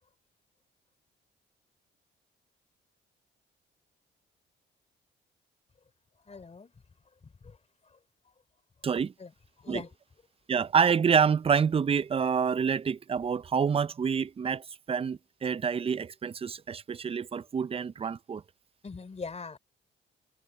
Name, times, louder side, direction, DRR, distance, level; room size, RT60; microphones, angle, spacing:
voice 1, 6.2-6.7 7.2-7.6 7.8-8.0 8.2-8.3 9.2-9.3 9.6-9.9 18.8-19.6, left 4 dB, 35° left, 3.2 m, -42 dB
voice 2, 10.5-18.4, right 6 dB, 30° right, 0.5 m, -27 dB
cardioid pair, 90°, 20 cm